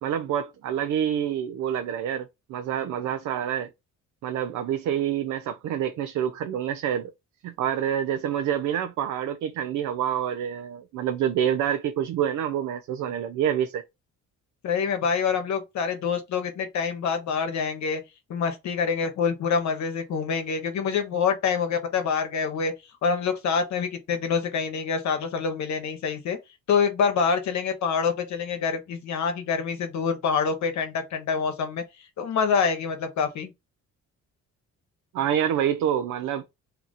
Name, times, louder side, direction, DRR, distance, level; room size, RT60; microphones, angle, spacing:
voice 1, 0.0-3.7 4.2-7.1 7.4-13.8 35.1-36.4, right 9 dB, 70° right, 0.5 m, -27 dB
voice 2, 14.6-18.0 18.3-22.7 23.0-26.4 26.7-31.8 32.2-33.5, left 6 dB, 70° left, 1.0 m, -26 dB
2.8 x 2.4 x 3.9 m
cardioid pair, 90°, 30 cm